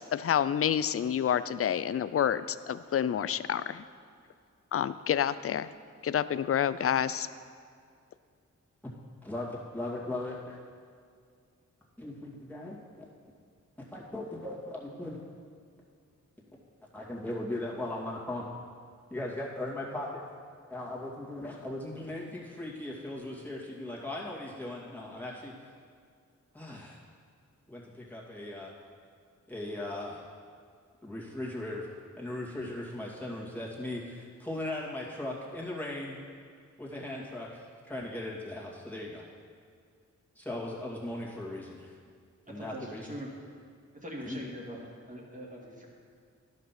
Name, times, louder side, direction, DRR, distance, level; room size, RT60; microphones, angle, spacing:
voice 1, 0.0-3.8 4.7-5.7 6.0-7.3, left 9 dB, 45° left, 15 dB, 0.4 m, -28 dB
voice 2, 9.2-10.6 12.0-13.1 13.9-15.2 16.9-18.5 19.1-20.2 20.7-25.5 26.5-27.0 27.7-28.7 29.5-30.2 31.0-31.9 32.2-36.2 36.8-39.3 40.4-41.9 42.5-43.1 44.2-44.4, left 1 dB, 5° left, -5 dB, 2.2 m, -38 dB
voice 3, 42.6-43.3 44.0-44.8 45.1-45.9, equal, 25° right, -3 dB, 2.0 m, -42 dB
11.0 x 5.4 x 5.8 m, 2.2 s
cardioid pair, 50°, 31 cm